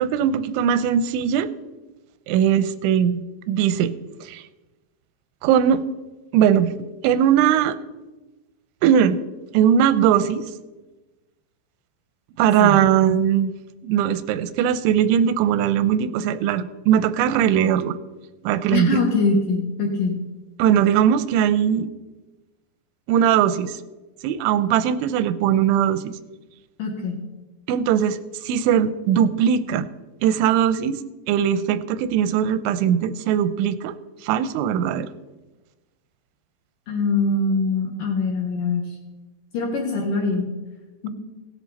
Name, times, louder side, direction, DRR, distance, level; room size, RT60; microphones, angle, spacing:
voice 1, 0.0-1.5 2.3-4.0 4.2-4.4 5.4-5.8 6.3-6.7 7.0-7.8 8.8-9.2 9.5-10.5 12.4-13.5 13.8-18.0 18.4-19.1 20.6-21.9 23.1-23.8 24.2-26.2 27.7-29.9 30.2-31.0 31.3-33.9 34.2-35.1, right 9 dB, 90° right, 13 dB, 3.0 m, -20 dB
voice 2, 18.7-20.2 26.8-27.2 36.9-38.9 39.5-40.5 41.0-41.1, left 3 dB, 65° left, 0 dB, 2.4 m, -23 dB
17.0 x 10.5 x 4.1 m, 1.1 s
omnidirectional pair, 5.3 m